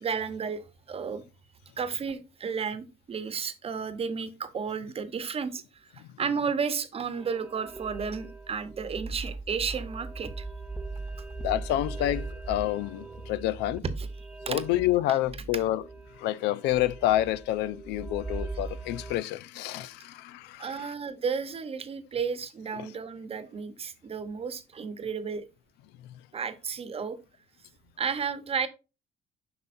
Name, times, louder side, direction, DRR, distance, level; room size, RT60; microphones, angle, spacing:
voice 1, 0.0-1.2 1.8-10.5 14.0-14.1 14.5-14.6 20.6-25.4 26.3-27.2 28.0-28.7, right 6 dB, 35° right, 1.0 m, -33 dB
sound 1, 7.2-19.2, right 3 dB, 5° right, 0.5 m, -39 dB
voice 2, 11.4-13.8 14.5-15.8 16.1-20.9 22.7-22.9, left 14 dB, 90° left, 0.5 m, -28 dB
7.8 x 5.6 x 2.6 m
cardioid pair, 110°, 17 cm